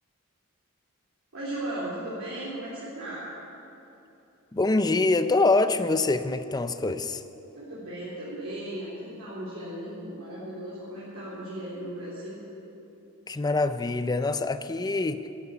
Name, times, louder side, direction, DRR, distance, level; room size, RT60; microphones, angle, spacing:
voice 1, 1.3-3.2 7.5-12.4, right 1 dB, 70° right, -10 dB, 3.5 m, -36 dB
voice 2, 4.5-7.2 13.3-15.3, left 3 dB, 20° left, 11 dB, 0.5 m, -25 dB
12.5 x 9.1 x 9.7 m, 2.9 s
head